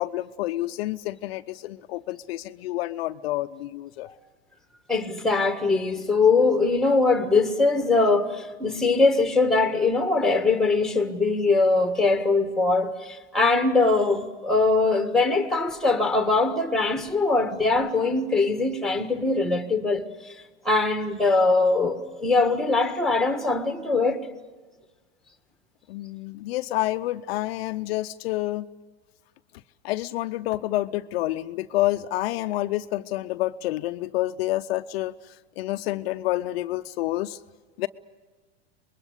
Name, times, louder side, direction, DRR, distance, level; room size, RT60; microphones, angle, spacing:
voice 1, 0.0-4.1 25.9-28.7 29.8-37.4 37.8-37.9, left 16 dB, 60° left, 0.7 m, -28 dB
voice 2, 4.9-20.0 20.6-24.2, left 3 dB, ahead, 1.7 m, -22 dB
25.0 x 21.0 x 8.3 m
hypercardioid pair, 110°, 34 cm